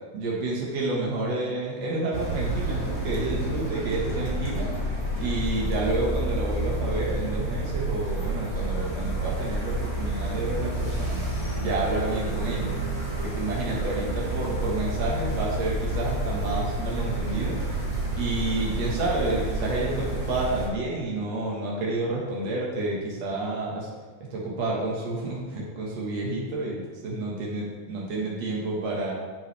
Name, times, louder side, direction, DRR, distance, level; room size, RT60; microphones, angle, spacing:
voice 1, 0.1-4.7 5.2-11.2 11.5-12.7 13.2-17.6 18.2-23.9 24.3-29.1, right 2 dB, 70° right, -4 dB, 1.6 m, -29 dB
sound 1, 2.1-20.7, right 1 dB, 10° left, 1.7 m, -29 dB
10.5 x 7.2 x 3.5 m, 1.4 s
omnidirectional pair, 5.5 m